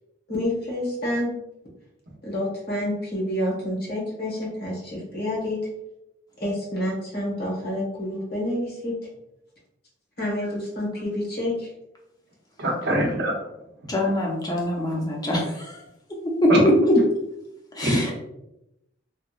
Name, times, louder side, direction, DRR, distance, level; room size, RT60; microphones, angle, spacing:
voice 1, 0.3-1.3 2.2-5.6 6.4-9.0 10.2-11.7, left 1 dB, 55° left, -4 dB, 1.1 m, -28 dB
voice 2, 12.6-13.4 16.5-16.6 17.8-18.1, right 1 dB, 60° right, -1 dB, 0.7 m, -23 dB
voice 3, 13.9-15.8 16.4-16.7 17.7-18.1, left 1 dB, 20° left, -2 dB, 0.6 m, -23 dB
2.8 x 2.3 x 2.3 m, 0.86 s
head